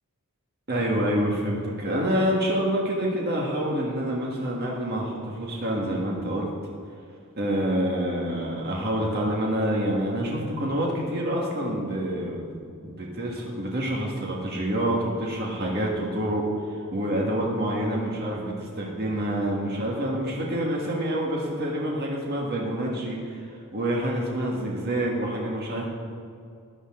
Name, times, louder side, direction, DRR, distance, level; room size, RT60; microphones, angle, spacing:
voice 1, 0.7-6.5 7.4-12.5 12.8-16.5 16.9-25.9, right 1 dB, 45° right, -2 dB, 1.6 m, -27 dB
13.5 x 11.0 x 3.7 m, 2.4 s
head